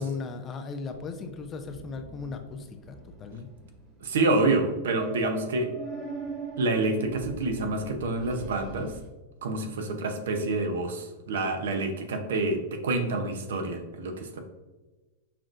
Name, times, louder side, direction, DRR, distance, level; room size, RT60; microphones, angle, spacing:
voice 1, 0.0-3.5, left 4 dB, 30° left, 7 dB, 0.4 m, -37 dB
sound 1, 0.9-9.1, right 3 dB, 35° right, 1.3 m, -42 dB
voice 2, 4.0-5.7 6.6-8.9 9.4-14.4, right 2 dB, 75° right, 5 dB, 0.6 m, -27 dB
5.7 x 2.5 x 2.4 m, 1.2 s
hypercardioid pair, 115°, 0 cm